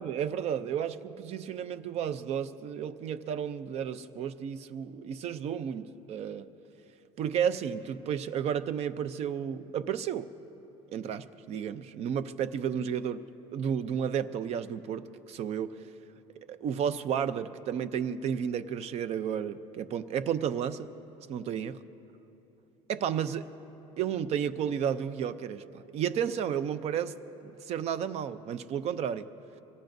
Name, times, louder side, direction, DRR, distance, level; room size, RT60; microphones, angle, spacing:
voice 1, 0.0-6.5 7.2-10.3 10.9-13.2 13.5-15.9 16.4-20.9 21.3-21.8 22.9-23.5 24.0-29.3, right 8 dB, 50° right, 14 dB, 0.6 m, -32 dB
24.5 x 18.0 x 2.7 m, 3.0 s
cardioid pair, 115°, 14 cm